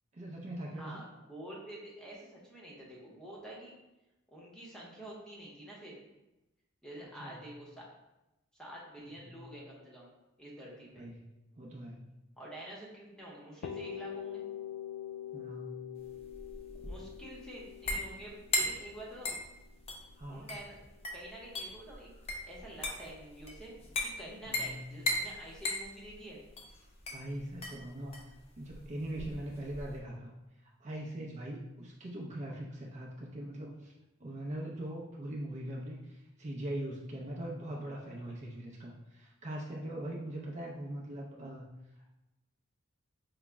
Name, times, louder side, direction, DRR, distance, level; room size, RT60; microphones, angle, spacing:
voice 1, 0.1-1.0 7.0-7.4 9.0-9.4 11.0-11.2 11.6-12.0 15.3-15.8 20.2-20.5 24.5-24.8 27.1-28.1 28.6-30.3 30.8-33.9 34.2-41.7, right 1 dB, 35° right, -2 dB, 0.5 m, -41 dB
voice 2, 0.8-3.7 4.3-6.0 6.8-7.9 8.6-10.1 10.4-11.1 12.4-14.4 16.8-19.4 20.3-20.8 21.1-22.1 22.4-23.8 24.2-26.4, right 1 dB, 5° left, -4 dB, 0.8 m, -48 dB
sound 1, 13.6-21.3, left 10 dB, 85° left, 0.3 m, -44 dB
sound 2, 16.0-30.0, left 1 dB, 30° left, 0.6 m, -38 dB
4.7 x 2.0 x 3.4 m, 0.96 s
head